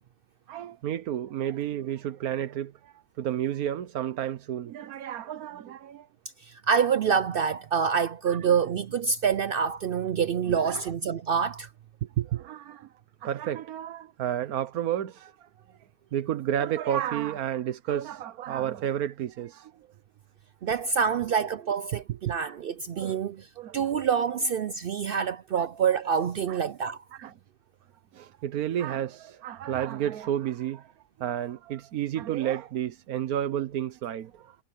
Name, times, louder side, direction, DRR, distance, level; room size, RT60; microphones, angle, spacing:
voice 1, 0.5-6.1 8.3-8.5 10.5-10.9 12.0-12.9 13.2-15.5 16.1-19.9 22.1-22.3 22.9-23.2 23.6-23.9 25.6-25.7 26.5-26.6 27.1-27.3 28.1-30.9 31.2-34.6, right 11 dB, 90° right, 1.3 m, -31 dB
voice 2, 6.4-11.7 20.6-23.5 23.7-27.0, right 6 dB, 70° right, 0.5 m, -26 dB
omnidirectional pair, 1.5 m